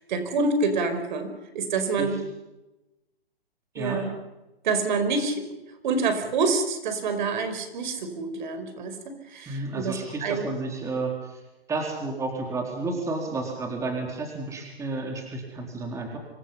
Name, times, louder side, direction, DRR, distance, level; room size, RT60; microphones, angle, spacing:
voice 1, 0.0-2.2 3.8-4.1 4.6-5.4 5.8-10.5, right 4 dB, 50° right, 8 dB, 5.0 m, -27 dB
voice 2, 9.5-11.1 11.7-16.2, right 3 dB, 10° right, 1 dB, 4.1 m, -31 dB
26.5 x 24.0 x 5.8 m, 1.0 s
hypercardioid pair, 140°, 30 cm